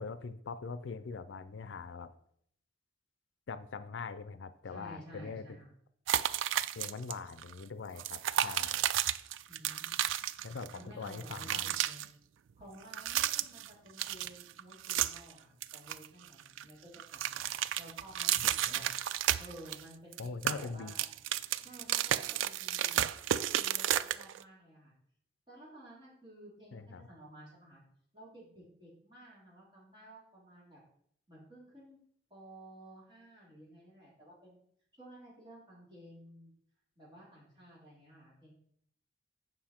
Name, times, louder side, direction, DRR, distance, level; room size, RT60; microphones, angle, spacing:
voice 1, 0.0-2.1 3.5-5.4 6.7-8.8 10.4-11.7 18.4-18.5 20.2-20.9 26.7-27.1, left 4 dB, 75° left, 13 dB, 0.4 m, -42 dB
voice 2, 4.7-5.7 9.5-10.0 10.7-12.1 12.6-17.5 17.8-18.9 19.4-21.1 21.6-23.0 23.5-24.9 25.5-27.8 28.1-30.8 31.3-32.0 32.3-34.6 35.0-36.5 36.9-38.5, right 1 dB, 25° right, -7 dB, 3.4 m, -53 dB
sound 1, 6.1-7.1 7.4-7.5 8.0-10.8 11.0-12.1 12.8-13.7 14.0-15.3 15.6-16.6 16.9-19.8 20.1-24.4, right 11 dB, 90° right, 0.3 m, -32 dB
7.7 x 5.6 x 4.3 m, 0.68 s
head